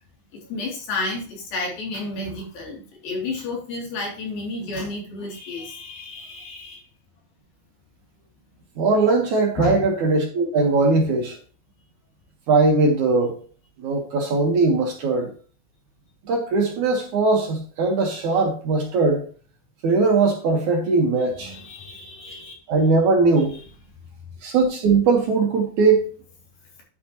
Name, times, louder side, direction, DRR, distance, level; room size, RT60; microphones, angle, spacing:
voice 1, 0.3-6.8 9.6-9.9 21.4-22.6 23.5-23.6, left 2 dB, 65° left, -1 dB, 4.8 m, -31 dB
voice 2, 8.8-11.4 12.5-13.4 13.8-15.3 16.3-19.2 19.8-21.5 22.7-23.6 24.4-26.1, right 3 dB, 60° right, 2 dB, 2.5 m, -20 dB
10.0 x 8.6 x 3.0 m, 0.40 s
omnidirectional pair, 4.5 m